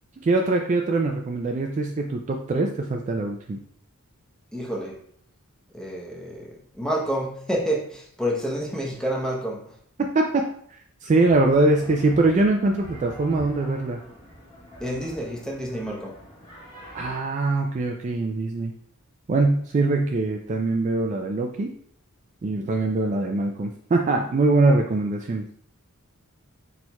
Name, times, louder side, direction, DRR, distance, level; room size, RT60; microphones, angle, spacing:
voice 1, 0.2-3.6 10.1-10.4 11.0-14.0 16.9-18.7 19.3-21.7 22.4-25.4, right 2 dB, 35° right, 2 dB, 0.3 m, -22 dB
voice 2, 4.5-5.0 5.7-9.7 14.8-16.2, equal, 5° left, -3 dB, 0.8 m, -29 dB
sound 1, 11.2-17.2, equal, 20° left, 1.4 m, -44 dB
4.4 x 4.2 x 2.2 m, 0.62 s
head